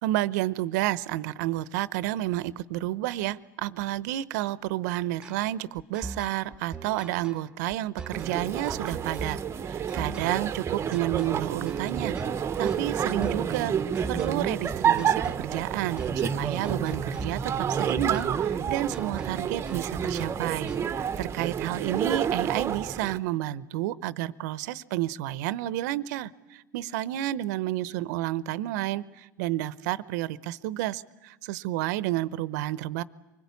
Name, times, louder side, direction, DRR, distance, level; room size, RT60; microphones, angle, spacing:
voice 1, 0.0-9.4 9.7-12.2 12.6-13.8 14.1-33.0, right 14 dB, 65° right, 17 dB, 0.8 m, -30 dB
sound 1, 5.2-21.1, right 4 dB, 10° right, 1.3 m, -41 dB
sound 2, 8.1-23.2, right 8 dB, 25° right, 0.9 m, -29 dB
24.5 x 21.0 x 8.4 m, 1.2 s
hypercardioid pair, 105°, 10 cm